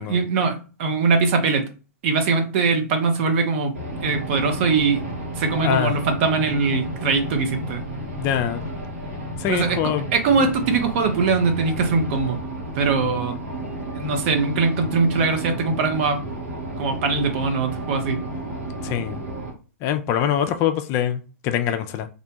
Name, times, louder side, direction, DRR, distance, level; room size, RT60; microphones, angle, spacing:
voice 1, 0.1-1.7 2.0-3.7 4.0-5.0 5.4-7.8 9.5-9.8 10.1-12.4 12.7-13.4 13.9-16.2 16.8-18.2, right 4 dB, 50° right, 6 dB, 0.6 m, -21 dB
sound 1, 3.7-19.5, right 1 dB, 70° right, 1.0 m, -32 dB
voice 2, 5.6-5.9 8.2-8.6 9.4-10.1 18.8-19.2 19.8-22.1, left 9 dB, 35° left, 8 dB, 0.3 m, -24 dB
2.5 x 2.1 x 2.8 m, 0.34 s
hypercardioid pair, 115°, 8 cm